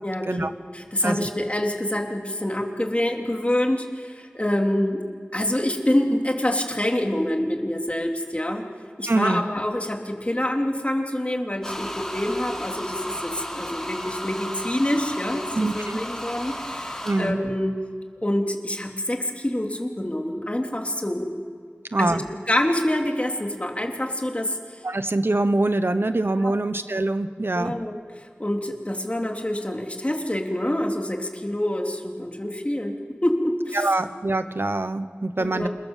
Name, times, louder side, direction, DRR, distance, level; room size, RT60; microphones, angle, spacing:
voice 1, 0.0-5.0 5.3-8.6 9.0-17.8 18.2-21.3 22.0-22.2 22.5-24.8 26.4-26.6 27.5-33.0 33.2-33.9 35.4-35.7, left 1 dB, 30° left, 2 dB, 3.4 m, -26 dB
voice 2, 9.1-9.4 15.5-16.0 17.0-17.4 21.9-22.2 24.8-27.7 33.7-35.7, right 2 dB, 65° right, 10 dB, 1.0 m, -24 dB
sound 1, 11.6-17.3, equal, 10° left, 4.6 m, -34 dB
28.0 x 21.0 x 7.5 m, 2.2 s
wide cardioid pair, 50°, 4 cm